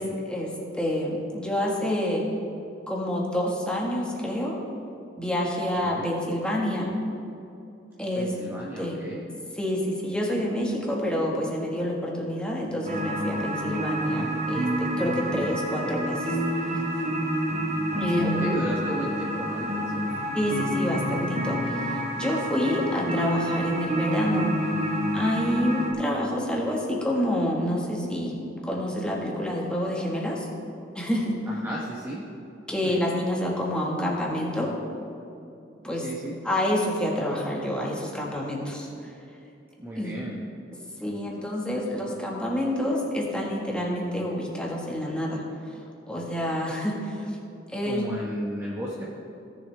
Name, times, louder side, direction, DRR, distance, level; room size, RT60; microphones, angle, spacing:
voice 1, 0.0-2.3 2.9-4.6 5.2-6.9 8.0-8.3 8.8-9.0 9.5-16.4 16.6-16.8 17.9-18.7 20.3-24.6 25.1-30.5 30.9-31.4 32.7-34.7 35.8-36.1 36.4-39.1 39.9-40.1 40.7-45.8 46.1-47.4 47.7-48.1, equal, 5° left, -3 dB, 1.6 m, -28 dB
voice 2, 5.7-6.1 8.1-9.3 15.2-15.6 18.2-20.1 31.5-32.3 32.8-32.9 35.8-36.4 39.8-40.4 47.8-49.1, right 1 dB, 15° right, -5 dB, 1.0 m, -34 dB
sound 1, 12.9-25.9, equal, 35° right, 1.2 m, -28 dB
17.0 x 7.1 x 3.4 m, 2.7 s
head